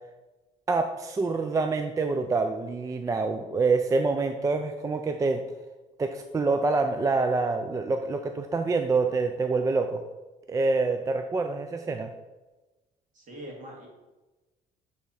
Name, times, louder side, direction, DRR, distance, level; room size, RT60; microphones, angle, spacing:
voice 1, 0.7-5.4 6.0-10.0 10.5-12.1, right 3 dB, 20° right, 6 dB, 0.3 m, -26 dB
voice 2, 13.1-13.9, equal, 50° right, -1 dB, 2.2 m, -42 dB
8.3 x 3.5 x 4.2 m, 1.2 s
cardioid pair, 110°, 17 cm